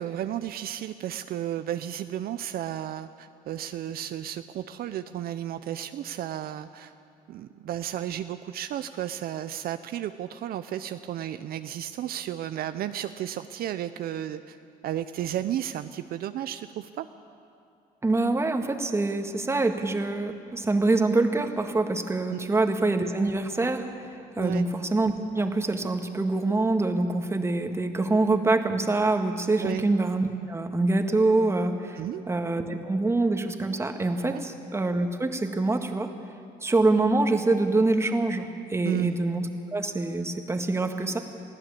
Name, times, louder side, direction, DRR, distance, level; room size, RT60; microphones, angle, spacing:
voice 1, 0.0-6.9 7.3-14.6 14.8-17.1 22.3-22.4 24.4-24.6 29.6-29.8 32.0-32.2 34.3-34.4 38.8-39.1, right 11 dB, 65° right, 10 dB, 0.6 m, -33 dB
voice 2, 18.0-32.0 32.3-36.1 36.6-41.2, right 2 dB, 15° right, 6 dB, 1.7 m, -25 dB
23.0 x 15.5 x 8.4 m, 2.5 s
cardioid pair, 110°, 17 cm